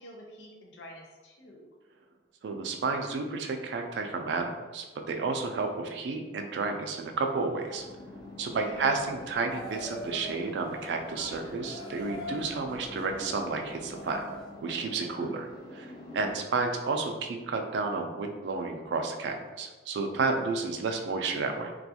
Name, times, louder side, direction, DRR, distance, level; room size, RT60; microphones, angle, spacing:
voice 1, 0.0-1.7 8.6-8.9 15.1-15.3 16.1-16.3, left 1 dB, 85° left, 0 dB, 0.6 m, -48 dB
voice 2, 2.4-7.8 8.4-14.2 14.6-15.9 16.1-21.7, right 4 dB, 75° right, 4 dB, 0.3 m, -31 dB
sound 1, 7.7-16.3, left 1 dB, 25° left, 0.3 m, -46 dB
sound 2, 8.4-14.5, equal, 60° left, 0.9 m, -44 dB
2.4 x 2.2 x 2.7 m, 1.3 s
head